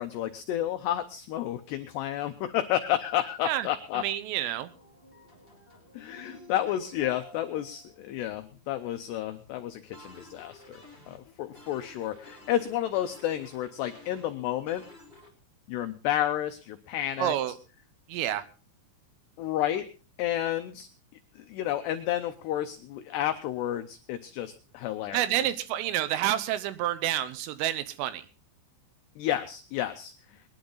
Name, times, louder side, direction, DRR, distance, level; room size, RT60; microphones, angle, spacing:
voice 1, 0.0-4.0 5.9-14.8 15.7-17.3 19.4-19.9 20.2-20.9 21.4-25.3 29.2-30.1, left 12 dB, 85° left, 7 dB, 2.4 m, -31 dB
voice 2, 4.0-4.7 17.2-17.5 18.1-18.4 25.1-28.2, right 13 dB, 85° right, 13 dB, 3.4 m, -29 dB
sound 1, 4.6-15.3, left 1 dB, 20° right, 1.5 m, -52 dB
22.0 x 10.5 x 3.9 m, 0.34 s
omnidirectional pair, 5.8 m